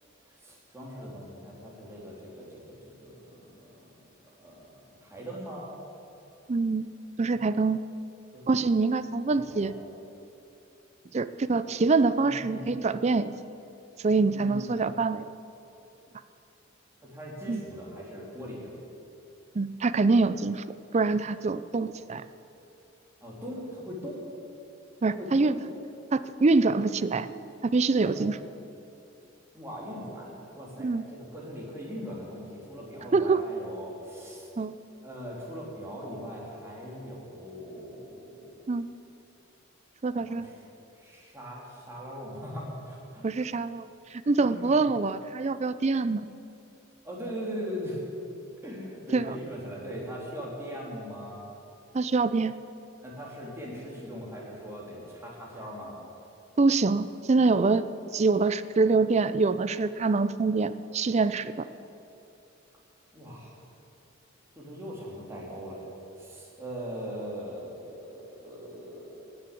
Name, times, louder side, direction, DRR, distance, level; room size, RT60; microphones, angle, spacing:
voice 1, 0.3-3.8 4.4-5.8 8.3-8.4 9.3-9.7 12.1-12.9 14.2-14.9 17.0-18.8 23.2-24.2 25.1-25.6 28.0-28.2 29.5-34.5 35.0-38.6 40.1-40.5 41.0-43.5 44.4-44.8 47.0-48.0 48.6-51.5 53.0-56.0 63.1-63.6 64.5-65.9 66.2-69.2, equal, 15° right, -4 dB, 3.2 m, -40 dB
voice 2, 6.5-6.9 7.2-7.8 8.5-9.7 11.1-13.3 14.0-15.2 17.5-17.6 19.5-20.6 20.9-22.2 25.0-25.5 26.1-27.3 27.6-28.3 30.8-31.0 33.1-33.4 34.6-34.8 38.7-38.9 40.0-40.5 43.2-46.3 49.1-49.4 51.9-52.5 56.6-57.9 58.1-61.7, right 3 dB, 35° right, 14 dB, 0.4 m, -25 dB
18.0 x 6.9 x 8.4 m, 2.7 s
head